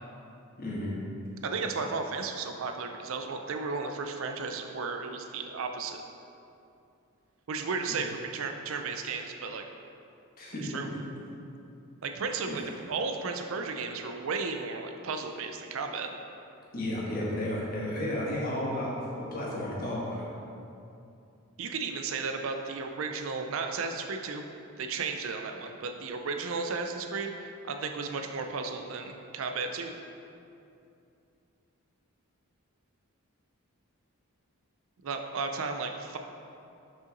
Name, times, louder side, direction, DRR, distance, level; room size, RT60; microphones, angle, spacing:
voice 1, 0.6-0.9 10.4-10.7 10.9-11.0 16.7-18.9 19.2-20.3, left 1 dB, 40° left, -5 dB, 1.3 m, -32 dB
voice 2, 1.4-6.0 7.5-9.6 10.6-10.9 12.0-16.1 21.6-24.4 24.8-29.9 35.0-36.2, right 4 dB, 60° right, 5 dB, 0.4 m, -34 dB
5.6 x 5.6 x 3.9 m, 2.6 s
head